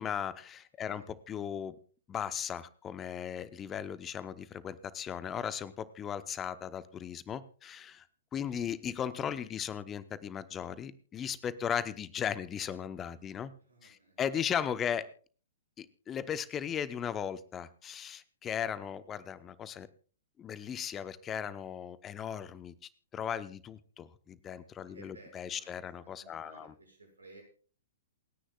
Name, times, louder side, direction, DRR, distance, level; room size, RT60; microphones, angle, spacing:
voice 1, 0.0-1.7 2.1-8.1 8.3-13.5 13.8-15.1 15.8-19.9 20.4-22.7 23.1-26.7, left 8 dB, 20° left, 14 dB, 0.9 m, -37 dB
voice 2, 0.8-1.1 13.6-14.2 14.5-14.6 14.8-15.1 24.8-25.7 26.1-27.4, right 3 dB, 80° right, 3 dB, 6.0 m, -57 dB
28.0 x 10.0 x 2.4 m, 0.40 s
figure-of-eight pair, 110°, 0 cm